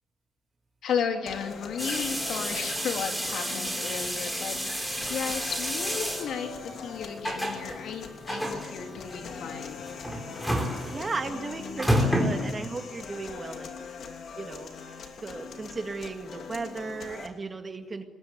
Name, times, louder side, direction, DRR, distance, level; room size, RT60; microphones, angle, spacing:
voice 1, 0.8-9.8, left 7 dB, 85° left, 4 dB, 3.3 m, -34 dB
sound 1, 1.3-17.3, left 5 dB, 60° left, 2.9 m, -41 dB
sound 2, 1.8-12.9, equal, ahead, 4.2 m, -31 dB
voice 2, 10.9-13.7 14.4-14.7 15.2-18.0, right 3 dB, 25° right, 6 dB, 2.0 m, -35 dB
27.0 x 21.0 x 9.4 m, 1.2 s
wide cardioid pair, 165°, 0 cm